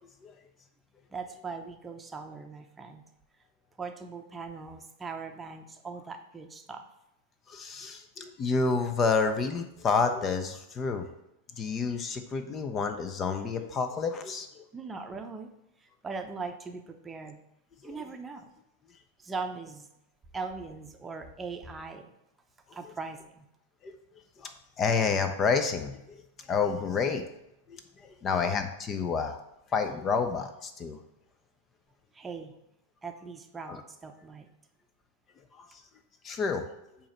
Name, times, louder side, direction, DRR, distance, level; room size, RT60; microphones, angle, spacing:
voice 1, 1.1-3.0 3.8-6.8 11.7-11.8 14.7-15.5 15.8-17.4 17.8-18.5 19.2-19.9 20.3-22.1 22.7-23.4 32.1-32.5 33.0-34.5, right 4 dB, 15° right, 5 dB, 0.8 m, -40 dB
voice 2, 7.5-11.1 11.6-14.6 17.8-18.0 23.8-23.9 24.4-24.5 24.8-26.0 26.5-27.2 28.0-29.4 29.7-31.0 33.7-33.8 36.2-36.6, left 5 dB, 30° left, 8 dB, 0.7 m, -29 dB
8.5 x 3.0 x 5.5 m, 0.86 s
figure-of-eight pair, 95°, 0 cm